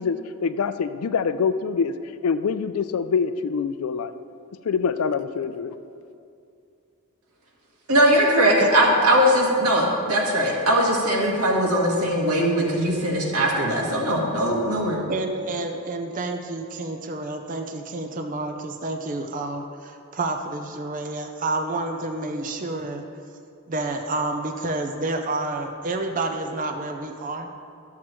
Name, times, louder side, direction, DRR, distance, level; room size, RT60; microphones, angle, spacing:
voice 1, 0.0-1.9 2.2-4.1 4.6-5.7, left 5 dB, 75° left, 12 dB, 0.4 m, -25 dB
voice 2, 7.9-15.0, equal, 90° right, -2 dB, 1.6 m, -20 dB
voice 3, 15.1-23.0 23.7-27.5, right 2 dB, 35° right, 5 dB, 0.5 m, -29 dB
13.0 x 7.4 x 3.1 m, 2.5 s
head